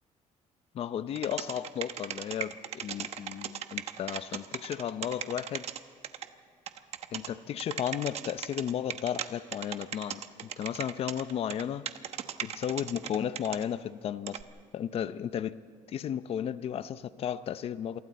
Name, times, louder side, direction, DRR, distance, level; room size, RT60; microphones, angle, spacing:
voice 1, 0.7-5.6 7.1-11.9 12.4-14.4 14.7-15.6 15.9-18.0, left 9 dB, 45° left, 14 dB, 0.7 m, -34 dB
sound 1, 1.2-6.3 6.7-7.3 7.6-9.2 9.5-13.6 14.3-14.4, right 9 dB, 50° right, 1.0 m, -37 dB
28.0 x 24.0 x 4.2 m, 2.4 s
cardioid pair, 150°, 14 cm